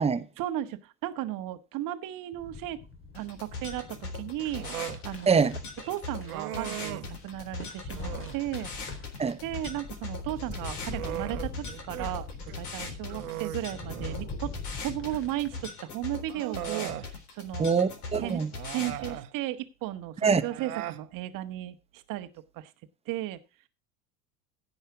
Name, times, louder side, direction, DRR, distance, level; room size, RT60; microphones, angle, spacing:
voice 1, 0.4-2.8 3.1-4.7 5.0-5.4 5.9-8.7 9.4-14.5 14.8-17.8 18.2-18.4 18.7-22.3 22.5-22.7 23.1-23.4, right 14 dB, 45° right, 1.4 m, -35 dB
sound 1, 2.3-15.7, left 3 dB, 25° left, 2.9 m, -43 dB
sound 2, 3.1-19.1, left 3 dB, 70° left, 3.8 m, -41 dB
Human voice, 4.5-5.0 6.3-7.2 7.9-8.4 10.4-12.1 12.5-12.6 13.1-14.3 15.5-15.6 16.3-17.1 18.5-19.3 20.4-21.0, right 13 dB, 70° right, 1.1 m, -38 dB
voice 2, 17.6-18.5 20.2-20.4, right 5 dB, 15° right, 1.0 m, -24 dB
16.0 x 5.6 x 4.8 m
figure-of-eight pair, 75°, 46 cm